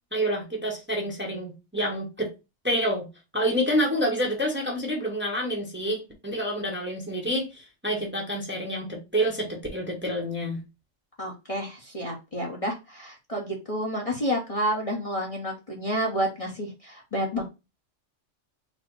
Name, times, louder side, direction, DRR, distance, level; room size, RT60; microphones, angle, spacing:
voice 1, 0.1-2.3 2.6-3.1 3.3-10.6, equal, 10° right, 0.8 m, -28 dB
voice 2, 11.2-17.4, equal, 30° left, 0.8 m, -30 dB
4.1 x 2.1 x 4.5 m
omnidirectional pair, 1.3 m